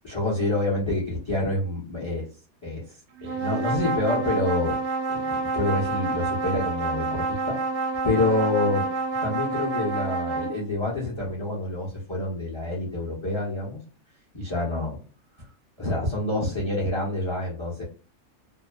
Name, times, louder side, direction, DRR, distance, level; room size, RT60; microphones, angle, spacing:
voice 1, 0.0-2.3 2.6-2.8 3.2-4.8 5.1-7.6 8.0-8.8 9.2-13.8 14.3-15.0 15.8-17.8, left 2 dB, 25° left, -3 dB, 0.7 m, -27 dB
sound 1, 3.2-10.6, right 3 dB, 70° right, 0.9 m, -28 dB
2.8 x 2.1 x 2.3 m, 0.37 s
omnidirectional pair, 1.6 m